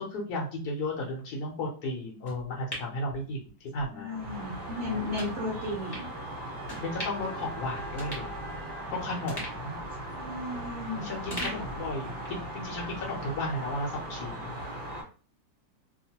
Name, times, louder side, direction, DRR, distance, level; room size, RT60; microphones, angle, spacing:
voice 1, 0.0-4.2 6.8-8.3 8.9-9.8 11.0-14.6, left 1 dB, 65° left, -1 dB, 1.1 m, -34 dB
sound 1, 2.3-3.9 4.2-4.4 5.1-5.3 5.9-6.1 6.7-7.3 7.6-7.7 8.0-8.9 9.3-10.9 11.3-12.5 12.8-12.9, equal, 40° left, 0.3 m, -41 dB
voice 2, 3.8-6.1 10.1-11.6, left 2 dB, 70° right, -1 dB, 0.7 m, -35 dB
sound 2, 4.1-15.0, right 1 dB, 30° right, 1.2 m, -38 dB
2.9 x 2.1 x 2.8 m, 0.38 s
omnidirectional pair, 2.0 m